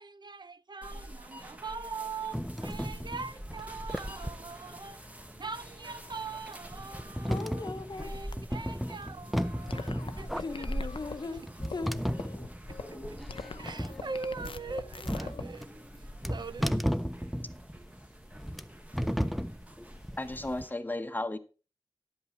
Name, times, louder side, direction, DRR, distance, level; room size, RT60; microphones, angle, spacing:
voice 1, 0.0-7.7 8.0-10.7 13.1-13.2 13.6-15.7 16.0-16.8, right 4 dB, 55° right, 0.5 m, -42 dB
sound 1, 0.8-20.7, equal, 15° right, 1.2 m, -46 dB
sound 2, 2.3-20.6, equal, ahead, 0.5 m, -35 dB
voice 2, 7.2-8.2 10.4-11.4 11.7-12.0, left 3 dB, 55° left, 0.9 m, -38 dB
sound 3, 9.7-15.4, left 5 dB, 80° left, 0.7 m, -43 dB
voice 3, 20.2-21.4, left 2 dB, 20° left, 1.0 m, -34 dB
11.0 x 8.2 x 4.5 m
wide cardioid pair, 90°, 9 cm